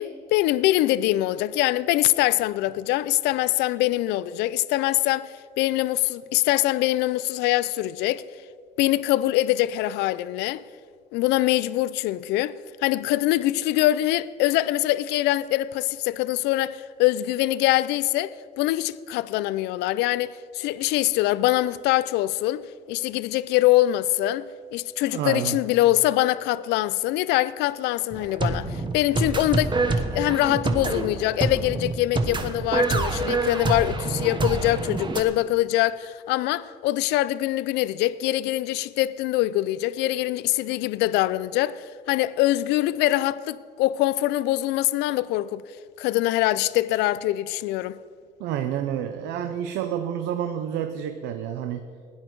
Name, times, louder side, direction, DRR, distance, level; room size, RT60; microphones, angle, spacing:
voice 1, 0.0-8.2 8.8-10.6 11.1-12.5 12.8-22.6 22.9-45.6 46.0-48.0, left 15 dB, 90° left, 0.4 m, -24 dB
voice 2, 25.1-25.6 48.4-51.8, right 10 dB, 90° right, 0.7 m, -29 dB
sound 1, 28.1-35.2, right 3 dB, 30° right, 1.2 m, -26 dB
16.5 x 10.5 x 4.6 m
cardioid pair, 110°, 17 cm